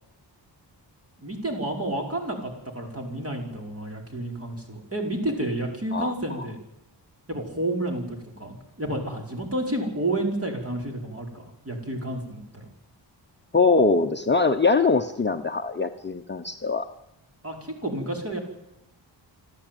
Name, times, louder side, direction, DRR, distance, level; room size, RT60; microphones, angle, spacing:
voice 1, 1.2-6.6 7.3-12.7 17.4-18.4, right 1 dB, 30° right, 2 dB, 5.1 m, -30 dB
voice 2, 13.5-16.8, left 4 dB, 25° left, 5 dB, 0.9 m, -22 dB
25.5 x 13.5 x 9.2 m, 0.94 s
wide cardioid pair, 140°, 44 cm